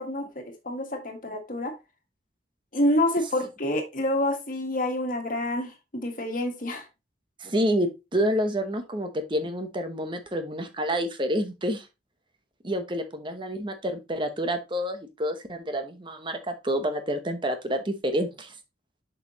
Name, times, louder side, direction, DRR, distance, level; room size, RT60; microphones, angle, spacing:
voice 1, 0.0-1.7 2.7-6.9, left 1 dB, 50° left, 4 dB, 1.7 m, -28 dB
voice 2, 7.4-11.9 12.6-18.5, equal, 25° right, 7 dB, 1.0 m, -28 dB
6.8 x 5.5 x 3.1 m, 0.25 s
head